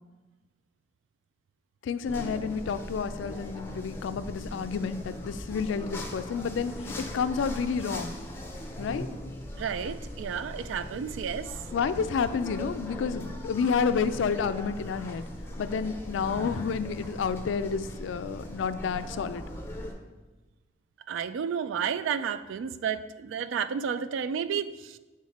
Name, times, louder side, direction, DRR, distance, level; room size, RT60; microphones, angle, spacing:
voice 1, 1.8-8.2 8.8-9.1 11.7-15.2 15.6-19.4, left 6 dB, 85° left, 12 dB, 0.3 m, -30 dB
sound 1, 2.1-19.9, left 1 dB, 10° left, 0.5 m, -40 dB
voice 2, 9.6-11.6 21.1-25.0, right 7 dB, 85° right, 13 dB, 0.3 m, -31 dB
6.5 x 3.7 x 4.2 m, 1.2 s
head